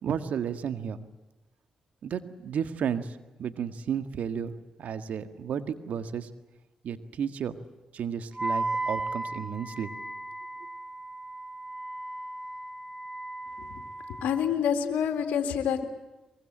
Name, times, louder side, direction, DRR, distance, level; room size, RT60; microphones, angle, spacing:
voice 1, 0.0-1.1 2.0-6.3 6.8-7.6 7.9-9.9, right 7 dB, 70° right, 10 dB, 1.8 m, -33 dB
Wind instrument woodwind instrument, 8.3-14.5, right 2 dB, 15° right, 6.6 m, -35 dB
voice 2, 14.2-15.8, left 8 dB, 80° left, 6 dB, 2.3 m, -27 dB
23.0 x 23.0 x 8.9 m, 1.0 s
hypercardioid pair, 45°, 3 cm